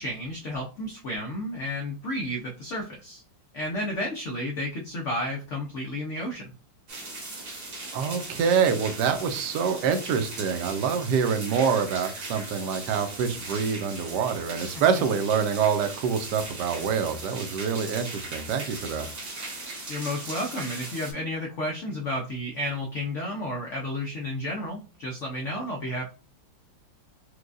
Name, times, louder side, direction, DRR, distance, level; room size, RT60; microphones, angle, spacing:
voice 1, 0.0-3.2 3.5-6.5 19.9-26.1, left 1 dB, 85° left, 0 dB, 0.6 m, -32 dB
sound 1, 6.9-21.1, right 2 dB, 45° right, 0.9 m, -38 dB
voice 2, 7.9-19.1, right 6 dB, 75° right, 8 dB, 1.1 m, -26 dB
4.6 x 2.2 x 2.5 m, 0.38 s
omnidirectional pair, 2.0 m